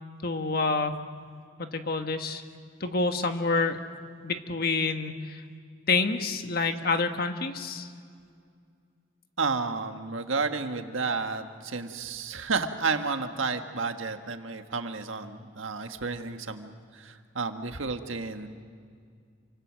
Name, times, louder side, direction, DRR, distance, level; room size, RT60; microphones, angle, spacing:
voice 1, 0.2-1.0 1.6-2.4 2.8-3.8 4.2-5.4 5.9-7.9, left 3 dB, 50° left, 6 dB, 1.5 m, -27 dB
voice 2, 9.4-18.5, right 4 dB, 85° right, 6 dB, 1.6 m, -31 dB
29.0 x 25.0 x 6.4 m, 2.2 s
head